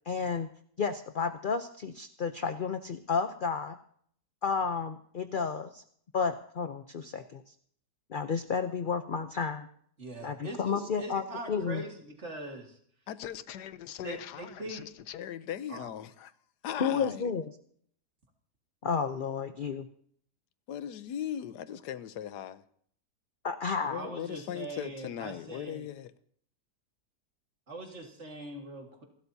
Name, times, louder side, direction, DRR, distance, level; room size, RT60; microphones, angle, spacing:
voice 1, 0.1-0.5 0.8-3.8 4.4-5.8 6.1-7.4 8.1-9.7 10.2-11.2 11.5-11.8 16.8-17.5 18.8-19.9 23.4-24.0, left 5 dB, 55° left, 0.5 m, -31 dB
voice 2, 10.0-12.8 14.0-14.9 15.7-15.9 23.9-25.8 27.7-29.0, right 2 dB, 45° right, 2.2 m, -42 dB
voice 3, 13.1-16.3 16.6-17.3 20.7-22.6 23.8-26.1, left 10 dB, 85° left, 1.3 m, -39 dB
27.0 x 12.5 x 2.8 m
omnidirectional pair, 1.7 m